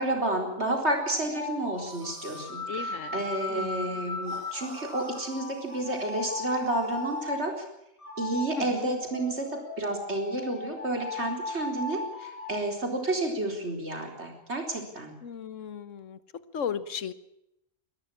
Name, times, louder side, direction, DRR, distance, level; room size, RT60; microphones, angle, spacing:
voice 1, 0.0-7.5 8.2-9.5 9.8-15.1, right 2 dB, 60° right, 3 dB, 4.6 m, -30 dB
sound 1, 1.0-7.4 8.0-12.5, left 3 dB, 25° left, 6.5 m, -37 dB
sound 2, 1.7-2.6 4.2-7.4, right 1 dB, 80° right, 5.3 m, -49 dB
voice 2, 2.7-3.2 3.5-3.9 8.6-8.9 15.2-16.2 16.5-17.1, left 7 dB, 75° left, 15 dB, 1.4 m, -36 dB
23.0 x 13.5 x 8.7 m, 0.83 s
omnidirectional pair, 1.3 m